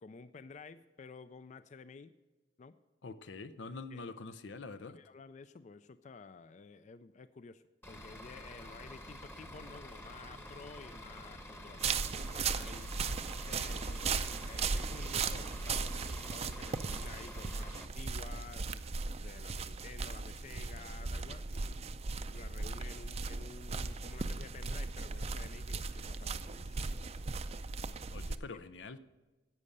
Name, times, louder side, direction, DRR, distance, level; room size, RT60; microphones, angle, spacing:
voice 1, 0.0-2.1 2.6-2.7 3.9-4.1 5.0-12.9 13.5-18.6 19.2-21.9 22.3-27.4, left 4 dB, 40° left, 13 dB, 0.4 m, -52 dB
voice 2, 3.0-5.0 28.1-29.0, left 3 dB, 85° left, 13 dB, 0.6 m, -45 dB
Bus / Idling, 7.8-17.8, left 1 dB, 15° left, 1.0 m, -49 dB
sound 1, 11.8-28.4, right 4 dB, 35° right, 0.5 m, -37 dB
10.5 x 8.4 x 6.5 m, 1.2 s
head